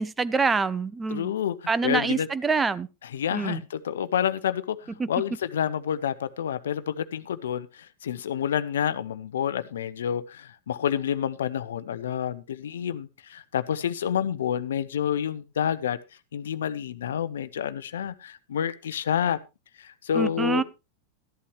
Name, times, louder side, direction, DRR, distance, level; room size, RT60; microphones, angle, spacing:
voice 1, 0.0-1.3 1.7-2.9 3.3-3.6 5.0-5.1 20.1-20.6, right 4 dB, 15° right, 0.6 m, -25 dB
voice 2, 1.1-2.3 3.1-16.0 16.3-19.4 19.8-20.6, left 9 dB, 65° left, 0.7 m, -29 dB
13.5 x 11.0 x 3.1 m
figure-of-eight pair, 90°, 0 cm